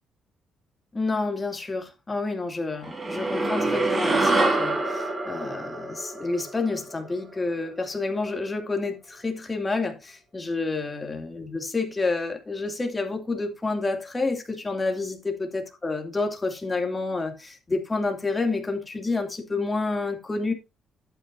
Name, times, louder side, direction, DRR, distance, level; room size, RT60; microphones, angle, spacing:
voice 1, 0.9-20.5, left 3 dB, 25° left, 2.7 m, -29 dB
sound 1, 2.8-7.5, right 2 dB, 25° right, 3.8 m, -26 dB
11.5 x 9.1 x 2.7 m
cardioid pair, 90°, 0 cm